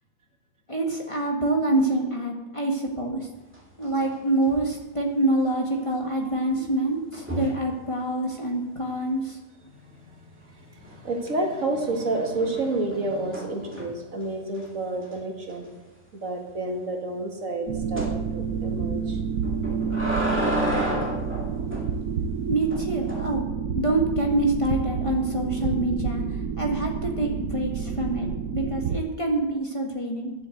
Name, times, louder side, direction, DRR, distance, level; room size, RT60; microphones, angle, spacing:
voice 1, 0.7-3.3 3.8-9.4 22.5-23.5 23.7-30.3, right 2 dB, 20° left, -1 dB, 1.6 m, -26 dB
sound 1, 3.5-4.2 4.4-4.8 7.1-7.7 10.8-11.3 11.7-14.1 14.5-14.7 15.0-15.1 15.5-15.6 18.0-18.2 19.4-21.9 22.7-23.2, right 1 dB, 10° right, 2.2 m, -31 dB
voice 2, 9.7-10.0 10.4-15.7 16.1-18.1 18.3-19.2, right 2 dB, 65° right, 1 dB, 2.3 m, -30 dB
sound 2, 17.7-29.0, right 6 dB, 85° right, 1.2 m, -29 dB
11.0 x 7.6 x 7.8 m, 1.1 s
omnidirectional pair, 1.5 m